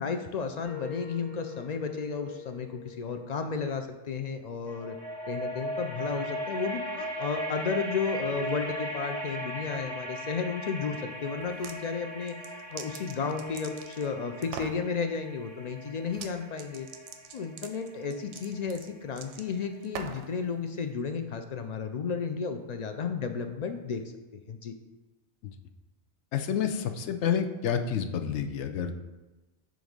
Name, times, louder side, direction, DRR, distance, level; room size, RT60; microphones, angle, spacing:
voice 1, 0.0-5.0 5.3-16.9 17.3-24.0 24.3-24.8, left 5 dB, 60° left, 6 dB, 0.4 m, -33 dB
sound 1, 0.6-3.9 4.7-19.5, equal, 40° left, 1.3 m, -39 dB
sound 2, 11.4-11.8 12.2-14.1 14.4-14.8 16.1-16.3 16.6-20.3, right 6 dB, 85° right, 0.9 m, -42 dB
voice 2, 26.3-28.9, left 8 dB, 80° left, 7 dB, 0.9 m, -29 dB
7.7 x 2.6 x 5.1 m, 1.1 s
omnidirectional pair, 1.2 m